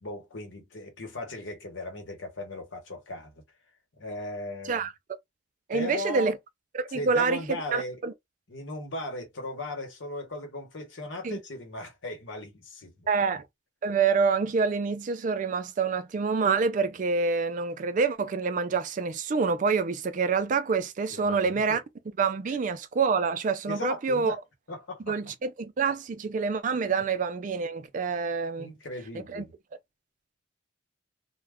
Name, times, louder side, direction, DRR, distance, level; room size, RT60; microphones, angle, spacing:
voice 1, 0.0-3.3 4.0-4.9 5.7-6.3 6.9-8.0 8.5-13.1 21.1-21.8 23.7-24.4 24.7-25.2 28.6-29.5, left 1 dB, 80° left, 1.0 m, -37 dB
voice 2, 5.7-6.4 6.7-7.4 7.7-8.1 11.2-11.4 13.1-13.4 13.8-21.8 22.2-24.4 25.1-28.7 29.3-29.5, right 5 dB, 40° right, 0.4 m, -27 dB
2.3 x 2.1 x 3.4 m
head